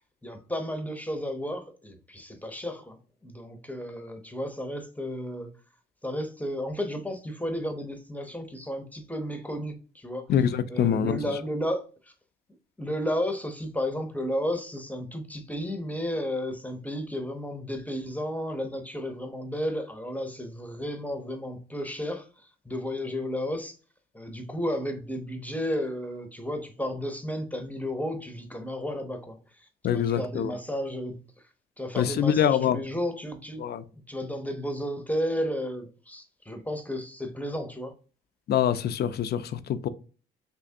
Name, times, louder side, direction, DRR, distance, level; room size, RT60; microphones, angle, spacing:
voice 1, 0.2-5.5 6.0-10.3 10.7-11.8 12.8-22.3 22.7-23.8 24.1-29.4 29.9-31.2 31.8-33.6 34.1-37.9, equal, 10° left, 0.7 m, -33 dB
voice 2, 10.3-11.2 29.8-30.6 32.0-32.8 33.6-33.8 38.5-39.9, left 9 dB, 55° left, 0.4 m, -25 dB
3.4 x 3.0 x 2.6 m
cardioid pair, 90°, 20 cm